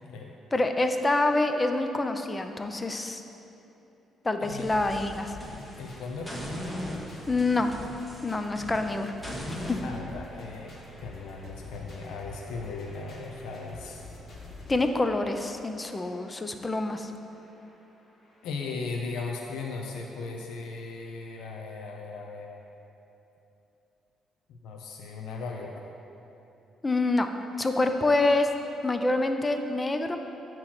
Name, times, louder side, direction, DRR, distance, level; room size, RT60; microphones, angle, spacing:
voice 1, 0.5-3.2 4.2-5.4 7.3-7.7 8.2-9.1 9.7-9.8 14.7-17.1 26.8-27.3 27.6-28.5 28.8-30.2, left 2 dB, 20° left, 6 dB, 0.5 m, -26 dB
sound 1, 4.4-5.9 6.3-9.8, left 1 dB, 5° left, 1.1 m, -39 dB
sound 2, 4.6-18.7 19.3-19.4 19.6-19.7, left 2 dB, 60° left, 1.5 m, -47 dB
voice 2, 5.8-6.3 9.8-10.7 11.0-14.0 18.4-22.6 24.5-25.7, left 4 dB, 85° left, 1 dB, 0.5 m, -37 dB
8.5 x 3.0 x 5.9 m, 3.0 s
cardioid pair, 90°, 0 cm